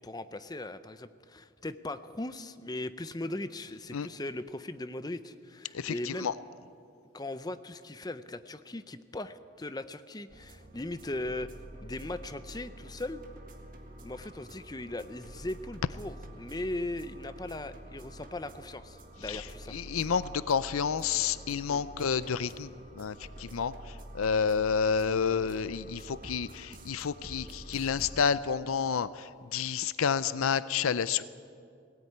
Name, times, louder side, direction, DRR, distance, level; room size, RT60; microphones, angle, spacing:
voice 1, 0.0-6.3 7.1-11.5 11.8-13.2 14.0-19.7 21.7-21.8, left 1 dB, 20° left, 12 dB, 0.6 m, -39 dB
voice 2, 5.7-6.3 19.3-19.5 19.7-22.7 23.0-31.2, left 6 dB, 90° left, 15 dB, 0.5 m, -30 dB
sound 1, 10.3-28.2, right 1 dB, 40° right, 1.8 m, -48 dB
18.5 x 18.0 x 9.4 m, 2.4 s
head